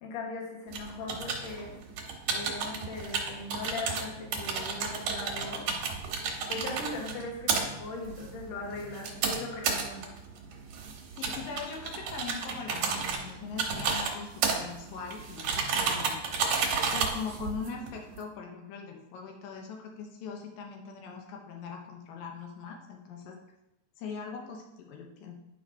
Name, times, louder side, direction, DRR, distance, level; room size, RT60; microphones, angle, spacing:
voice 1, 0.0-1.7 2.3-5.8 6.5-10.0, left 3 dB, 60° left, -1 dB, 2.2 m, -39 dB
sound 1, 0.7-18.2, right 5 dB, 70° right, 2.4 m, -33 dB
voice 2, 11.1-16.3 16.9-23.4 24.0-25.4, left 5 dB, 85° left, 1 dB, 2.5 m, -41 dB
10.5 x 5.2 x 2.6 m, 0.91 s
omnidirectional pair, 3.9 m